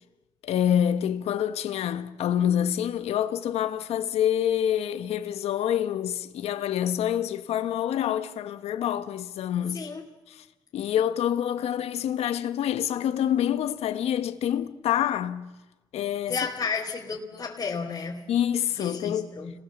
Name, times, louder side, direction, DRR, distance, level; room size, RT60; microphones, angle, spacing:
voice 1, 0.4-9.9 10.3-10.4 10.7-15.5 15.9-16.4 18.3-19.3, left 10 dB, 85° left, 1.3 m, -27 dB
voice 2, 9.7-10.1 16.3-18.2 18.8-19.5, left 5 dB, 35° left, 2.8 m, -32 dB
30.0 x 19.0 x 7.3 m
cardioid pair, 110°, 10 cm